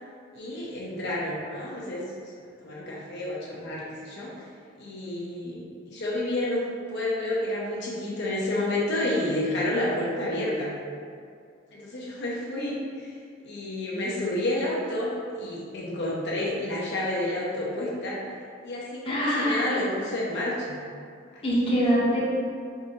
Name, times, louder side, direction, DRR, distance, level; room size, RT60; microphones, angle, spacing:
voice 1, 0.3-2.0 2.6-4.3 4.8-10.7 11.7-13.1 13.4-18.2 18.6-20.8, left 1 dB, 60° left, -5 dB, 0.7 m, -30 dB
voice 2, 19.0-19.7 21.4-22.2, equal, 30° left, -7 dB, 0.8 m, -24 dB
4.7 x 2.7 x 2.7 m, 2.2 s
head